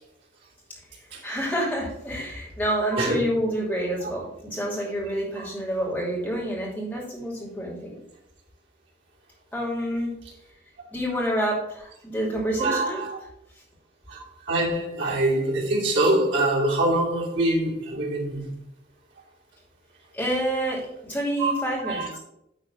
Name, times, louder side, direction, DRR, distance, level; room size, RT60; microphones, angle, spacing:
voice 1, 1.2-8.0 9.5-10.1 10.9-13.1 20.1-22.2, equal, 10° left, -4 dB, 2.6 m, -28 dB
voice 2, 12.6-13.1 14.1-18.6 21.4-21.5 21.8-22.1, right 2 dB, 85° right, -3 dB, 2.5 m, -24 dB
10.0 x 3.7 x 5.5 m, 0.80 s
head